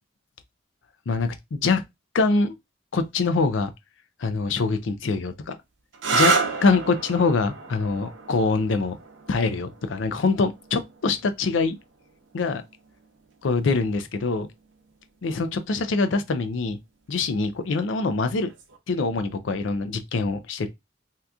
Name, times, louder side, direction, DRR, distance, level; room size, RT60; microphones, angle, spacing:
voice 1, 1.1-1.8 2.1-2.5 2.9-3.7 4.2-5.5 6.1-9.0 9.3-11.8 12.3-12.6 13.4-14.5 15.2-16.8 17.1-18.5 18.9-20.7, left 4 dB, 85° left, 0.5 m, -24 dB
sound 1, 5.9-13.4 14.4-14.9 18.4-18.8, right 4 dB, 80° right, 0.7 m, -30 dB
2.8 x 2.4 x 3.4 m
head